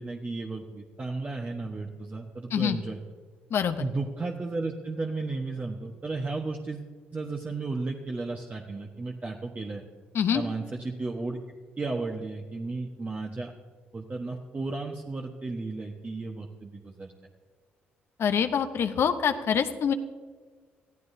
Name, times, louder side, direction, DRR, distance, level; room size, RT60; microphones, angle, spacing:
voice 1, 0.0-3.0 3.8-9.8 10.3-11.4 11.8-13.5 13.9-17.1, right 3 dB, 30° right, 0 dB, 1.2 m, -34 dB
voice 2, 3.5-3.8 10.1-10.4 18.2-19.9, left 7 dB, 65° left, 8 dB, 0.8 m, -25 dB
21.5 x 13.5 x 2.7 m, 1.5 s
supercardioid pair, 65°, 5 cm